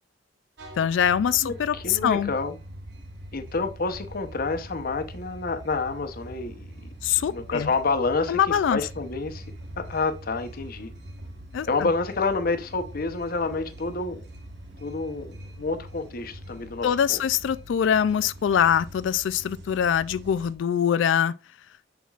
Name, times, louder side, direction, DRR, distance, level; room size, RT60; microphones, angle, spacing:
sound 1, 0.6-20.5, right 1 dB, 65° right, 1.3 m, -43 dB
voice 1, 0.8-2.3 7.0-7.7 8.3-8.8 11.5-11.9 16.8-21.3, left 8 dB, 80° left, 0.3 m, -23 dB
voice 2, 1.4-2.6 3.3-6.9 7.2-8.4 8.7-9.4 9.8-10.9 11.7-14.2 14.8-17.2, left 3 dB, 55° left, 0.9 m, -28 dB
7.1 x 5.9 x 2.4 m
head